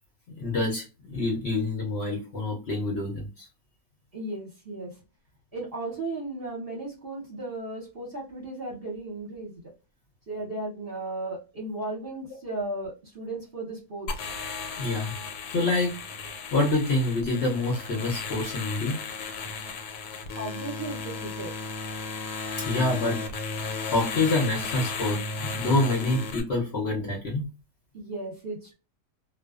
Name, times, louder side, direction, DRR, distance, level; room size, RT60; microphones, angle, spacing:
voice 1, 0.4-3.5 14.8-15.1 15.5-16.0 16.5-19.0 22.6-23.5 23.9-27.5, left 2 dB, 55° left, -1 dB, 0.8 m, -27 dB
voice 2, 4.1-4.9 5.5-9.6 10.3-14.3 20.4-21.5 27.9-28.7, right 2 dB, 45° right, -3 dB, 0.9 m, -35 dB
sound 1, 14.1-26.4, left 4 dB, 80° left, 1.1 m, -35 dB
2.4 x 2.3 x 2.3 m, 0.31 s
omnidirectional pair, 1.7 m